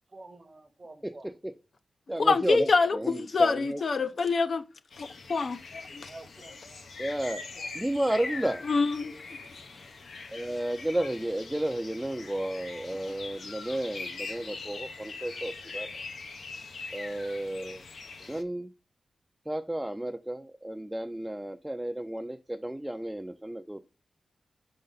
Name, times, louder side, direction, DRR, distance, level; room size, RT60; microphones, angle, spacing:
voice 1, 0.1-1.3 6.1-6.9 7.6-7.7, right 2 dB, 35° right, 0.8 m, -49 dB
voice 2, 1.0-1.5 2.1-3.8 7.0-7.4 7.7-8.6 10.3-16.0 16.9-17.8 18.2-18.7 19.5-23.8, right 1 dB, 5° right, 0.4 m, -32 dB
voice 3, 2.2-4.6 5.0-6.1 8.7-9.1, left 4 dB, 60° left, 0.6 m, -26 dB
sound 1, 4.9-18.4, left 4 dB, 80° left, 0.9 m, -42 dB
5.5 x 5.4 x 3.9 m
wide cardioid pair, 130°, 0 cm